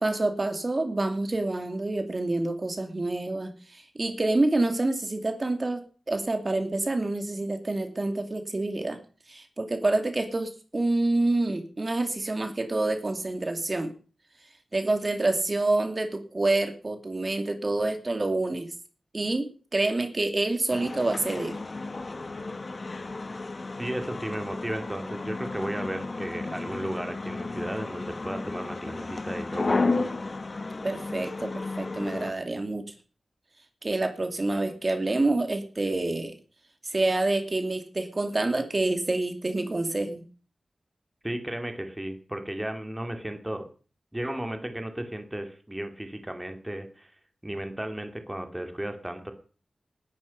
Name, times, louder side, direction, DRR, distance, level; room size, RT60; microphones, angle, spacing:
voice 1, 0.0-9.0 9.3-13.9 14.7-18.7 19.1-21.6 30.8-32.9 33.8-36.4 36.8-40.2, right 2 dB, 35° right, 6 dB, 2.6 m, -27 dB
sound 1, 20.7-32.3, left 3 dB, 45° left, 1.5 m, -33 dB
voice 2, 23.8-29.8 41.2-43.7 44.1-47.1 47.4-49.3, right 1 dB, 10° right, 5 dB, 2.4 m, -34 dB
19.0 x 11.5 x 5.4 m, 0.40 s
wide cardioid pair, 85°, 0 cm